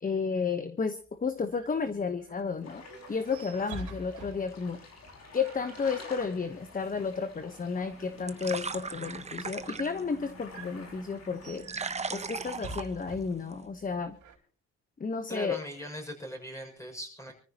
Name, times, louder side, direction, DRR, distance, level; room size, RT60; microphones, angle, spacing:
voice 1, 0.0-2.8 3.1-4.8 5.3-11.6 12.1-14.1 15.0-15.6, left 5 dB, 25° left, 10 dB, 1.1 m, -32 dB
sound 1, 1.0-14.4, right 3 dB, 75° right, 4.1 m, -49 dB
sound 2, 2.6-11.7, left 3 dB, 55° left, 5.9 m, -51 dB
sound 3, 7.7-13.7, right 4 dB, 20° right, 1.0 m, -40 dB
voice 2, 15.3-17.3, equal, 10° left, 2 dB, 6.6 m, -40 dB
26.0 x 14.0 x 3.0 m, 0.42 s
cardioid pair, 90°, 30 cm